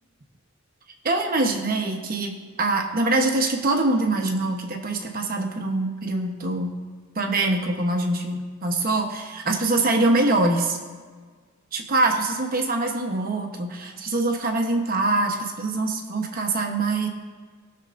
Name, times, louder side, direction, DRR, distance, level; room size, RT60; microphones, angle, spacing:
voice 1, 1.0-6.8 7.2-10.8 11.7-17.1, right 2 dB, 45° right, 3 dB, 1.1 m, -24 dB
19.0 x 6.8 x 2.6 m, 1.5 s
head